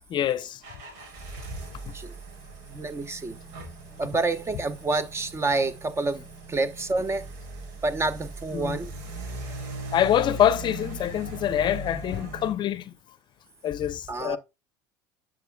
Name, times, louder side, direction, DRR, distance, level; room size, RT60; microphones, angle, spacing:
voice 1, 0.1-0.6 8.5-8.8 9.9-12.9 13.6-14.4, left 10 dB, 45° left, 0.6 m, -25 dB
sound 1, 0.6-12.5, right 2 dB, 75° right, 4.5 m, -40 dB
voice 2, 2.7-3.4 4.0-7.2 7.8-8.9 14.1-14.4, right 3 dB, 25° right, 1.1 m, -28 dB
10.5 x 6.2 x 2.3 m
supercardioid pair, 85°, 11 cm